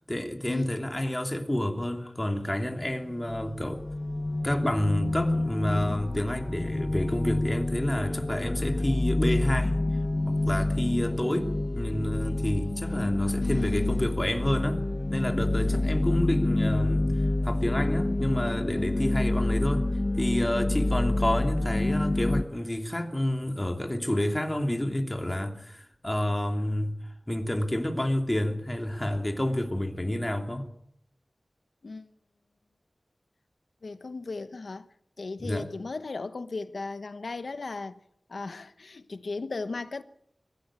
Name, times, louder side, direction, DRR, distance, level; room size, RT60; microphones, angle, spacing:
voice 1, 0.1-3.8 4.4-9.8 10.3-14.8 15.1-17.0 17.4-19.9 20.2-27.0 27.3-30.7 35.4-35.7, left 1 dB, 20° left, 2.9 m, -29 dB
sound 1, 2.9-22.4, left 2 dB, 40° left, 1.0 m, -28 dB
voice 2, 13.4-14.2 15.5-16.1 31.8-32.1 33.8-34.9 35.2-38.0 38.3-40.0, left 3 dB, 85° left, 1.1 m, -36 dB
23.0 x 15.5 x 8.9 m
wide cardioid pair, 70°, 0 cm